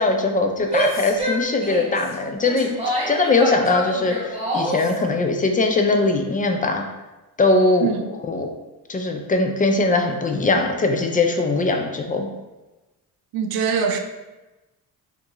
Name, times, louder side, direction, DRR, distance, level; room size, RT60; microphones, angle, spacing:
voice 1, 0.0-2.7 3.1-6.9 7.4-7.9 8.2-8.5 8.9-12.3, left 3 dB, 20° left, 0.3 m, -21 dB
Female speech woman speaking / Yell, 0.6-4.9, right 1 dB, 15° right, 1.0 m, -26 dB
voice 2, 13.3-14.0, right 6 dB, 65° right, 0.5 m, -23 dB
2.7 x 2.5 x 3.8 m
cardioid pair, 90°, 40 cm